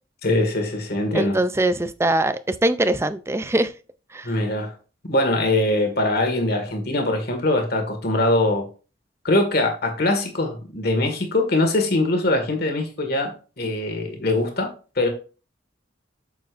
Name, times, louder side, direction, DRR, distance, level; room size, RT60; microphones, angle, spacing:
voice 1, 0.2-1.4 4.2-4.8 5.0-8.7 9.2-15.1, left 2 dB, 55° left, 1.9 m, -22 dB
voice 2, 1.1-3.7 4.1-4.3, right 1 dB, 15° right, 0.4 m, -22 dB
8.1 x 7.0 x 2.5 m
head